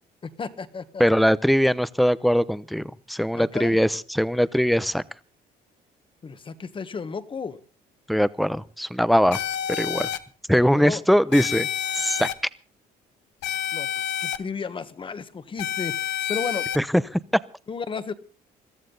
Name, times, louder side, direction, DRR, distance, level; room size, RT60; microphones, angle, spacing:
voice 1, 0.2-1.0 3.3-3.8 6.2-7.6 10.5-11.0 13.7-16.7 17.7-18.1, left 5 dB, 30° left, 12 dB, 1.4 m, -33 dB
voice 2, 1.0-5.0 8.1-9.4 9.8-10.1 10.5-11.7 11.9-12.3 16.8-17.2, equal, ahead, 16 dB, 0.8 m, -21 dB
sound 1, 9.3-10.2 11.3-12.3 13.4-14.4 15.6-16.8, left 10 dB, 85° left, 1.3 m, -28 dB
22.5 x 14.0 x 4.0 m, 0.38 s
cardioid pair, 110°, 17 cm